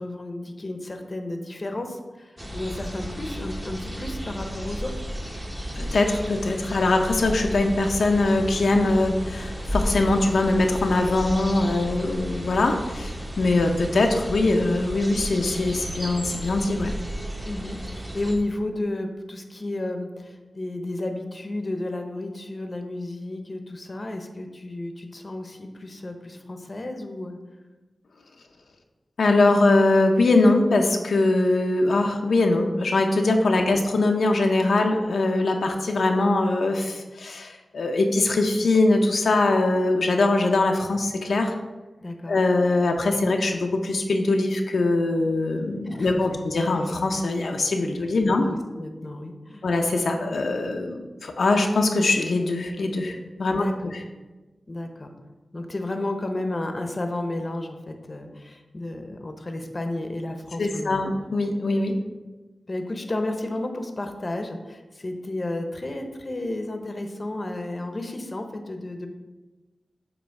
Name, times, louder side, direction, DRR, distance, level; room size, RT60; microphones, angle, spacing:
voice 1, 0.0-5.1 11.7-12.1 17.4-27.4 42.0-42.4 45.8-46.4 48.2-49.6 53.5-54.0 54.7-55.1 55.5-61.1 62.7-69.1, left 1 dB, 35° left, 5 dB, 0.7 m, -32 dB
sound 1, 2.4-18.4, equal, 15° right, 1.0 m, -33 dB
voice 2, 5.7-16.9 29.2-41.5 42.3-48.5 49.6-53.6 60.6-62.0, left 2 dB, 80° left, 3 dB, 0.6 m, -22 dB
7.8 x 3.0 x 5.3 m, 1.2 s
wide cardioid pair, 85°, 0 cm